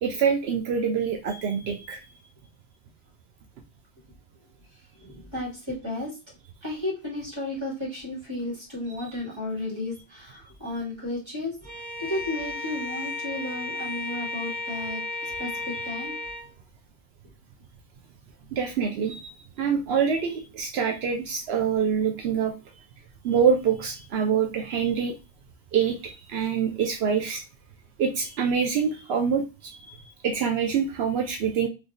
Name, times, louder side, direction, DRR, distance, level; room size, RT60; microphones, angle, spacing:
voice 1, 0.0-2.0 18.5-19.3 19.6-22.5 23.2-25.1 25.7-27.4 28.0-29.9 30.2-31.7, right 7 dB, 80° right, 3 dB, 0.8 m, -25 dB
voice 2, 5.0-6.2 6.6-11.5 12.0-16.2, left 2 dB, 25° right, -6 dB, 2.0 m, -33 dB
Bowed string instrument, 11.6-16.5, left 3 dB, 5° right, 1.5 m, -34 dB
3.5 x 3.1 x 2.5 m, 0.29 s
omnidirectional pair, 1.1 m